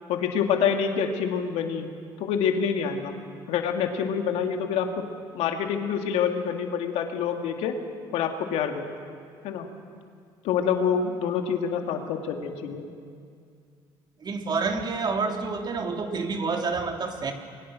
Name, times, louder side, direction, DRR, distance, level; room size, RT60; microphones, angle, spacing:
voice 1, 0.1-1.9 2.2-3.2 3.5-5.0 5.3-7.7 8.1-8.9 9.4-9.7 10.4-12.9, left 7 dB, 75° left, 4 dB, 2.5 m, -26 dB
voice 2, 14.2-17.3, right 4 dB, 40° right, 3 dB, 3.2 m, -28 dB
28.5 x 22.5 x 6.3 m, 2.3 s
supercardioid pair, 75°, 11 cm